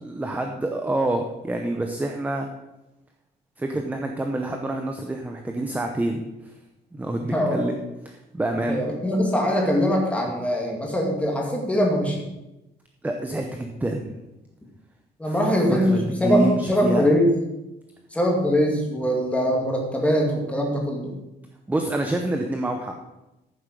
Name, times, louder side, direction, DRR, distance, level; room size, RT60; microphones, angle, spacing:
voice 1, 0.0-2.5 3.6-6.5 6.9-7.8 8.1-8.8 13.0-14.2 15.2-15.4 15.7-17.1 21.7-22.9, right 2 dB, 10° right, 4 dB, 0.7 m, -27 dB
voice 2, 7.2-7.7 8.7-12.2 15.2-17.3 18.1-21.1, equal, 5° left, -1 dB, 2.3 m, -22 dB
14.0 x 7.2 x 5.3 m, 0.97 s
cardioid pair, 170°, 18 cm